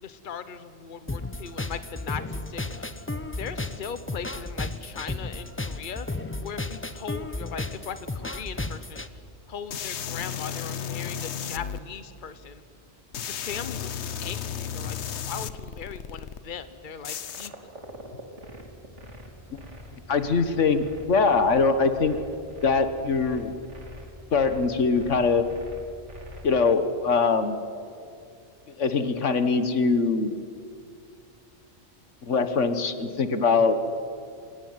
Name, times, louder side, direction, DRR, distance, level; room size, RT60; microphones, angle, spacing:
voice 1, 0.0-2.9 3.3-6.1 6.4-9.1 9.5-12.6 13.2-17.5, left 7 dB, 45° left, 12 dB, 1.2 m, -39 dB
sound 1, 1.1-9.1, left 2 dB, 10° left, 0.7 m, -34 dB
sound 2, 9.7-11.8 13.1-16.4 17.0-17.5, left 8 dB, 70° left, 1.1 m, -34 dB
sound 3, 17.2-26.5, left 1 dB, 80° right, 3.3 m, -44 dB
voice 2, 20.1-22.2 22.6-23.5 24.3-25.4 26.4-27.6 28.8-30.3 32.2-33.8, left 4 dB, 90° left, 10 dB, 1.7 m, -22 dB
26.5 x 17.5 x 9.6 m, 2.4 s
omnidirectional pair, 1.2 m